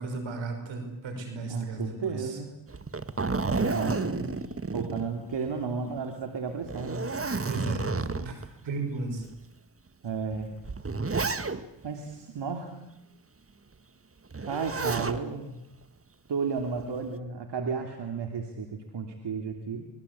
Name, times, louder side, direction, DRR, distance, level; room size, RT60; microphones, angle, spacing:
voice 1, 0.0-2.4 7.4-9.2, right 3 dB, 85° right, 6 dB, 6.0 m, -35 dB
voice 2, 1.5-2.5 3.5-4.3 4.7-7.1 8.0-8.3 10.0-10.5 11.8-12.8 14.5-15.6 16.3-19.9, right 5 dB, 65° right, 5 dB, 3.0 m, -33 dB
Zipper (clothing), 2.7-5.6 6.0-6.1 6.6-8.5 9.2-9.3 10.3-11.9 14.3-15.2 16.6-17.1, right 3 dB, 30° right, 1.8 m, -31 dB
26.0 x 20.5 x 8.5 m, 0.87 s
supercardioid pair, 50°, 44 cm